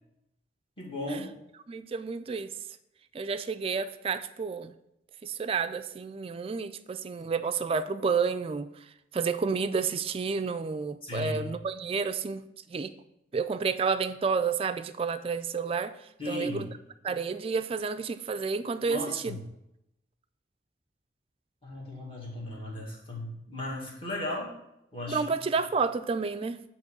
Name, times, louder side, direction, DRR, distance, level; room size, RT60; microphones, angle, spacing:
voice 1, 0.8-1.3 11.0-11.5 16.2-16.7 18.9-19.4 21.6-24.5 24.9-25.3, left 1 dB, 30° left, 1.7 m, -36 dB
voice 2, 1.7-2.5 3.1-4.7 5.2-8.7 9.1-12.4 12.7-12.9 13.3-15.9 16.3-16.7 17.0-19.4 25.1-26.6, right 5 dB, 30° right, 0.3 m, -30 dB
8.0 x 3.0 x 5.9 m
head